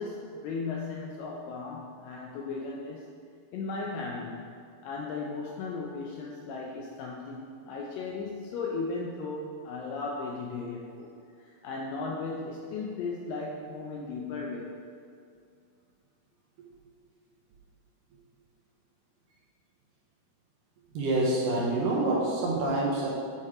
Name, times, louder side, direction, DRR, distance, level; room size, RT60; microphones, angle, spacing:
voice 1, 0.0-3.0 3.5-4.5 4.8-11.1 11.4-14.8, left 4 dB, 80° left, -1 dB, 2.0 m, -36 dB
voice 2, 20.9-23.1, right 2 dB, 75° right, -4 dB, 2.1 m, -26 dB
8.6 x 4.5 x 4.8 m, 2.3 s
omnidirectional pair, 4.5 m